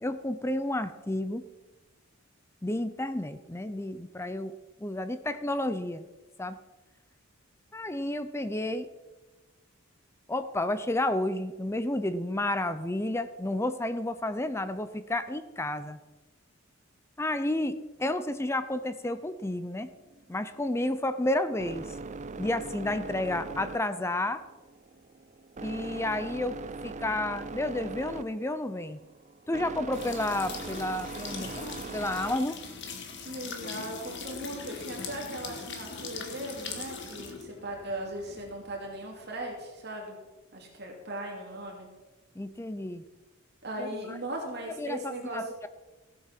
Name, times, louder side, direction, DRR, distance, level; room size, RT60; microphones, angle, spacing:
voice 1, 0.0-1.4 2.6-4.5 4.8-6.1 6.4-6.6 7.7-8.9 10.3-16.0 17.2-19.9 20.3-21.8 22.4-24.4 25.6-26.6 26.8-29.0 29.5-32.6 42.4-43.0 43.8-44.2 44.8-45.7, left 1 dB, 15° left, 12 dB, 0.5 m, -31 dB
sound 1, 20.0-33.0, right 3 dB, 35° right, 0.5 m, -41 dB
sound 2, 29.9-39.6, left 5 dB, 60° left, 1.9 m, -41 dB
voice 2, 33.2-40.2 40.5-41.9 43.6-45.5, right 1 dB, 55° right, -1 dB, 2.6 m, -38 dB
15.5 x 8.4 x 5.9 m, 1.2 s
head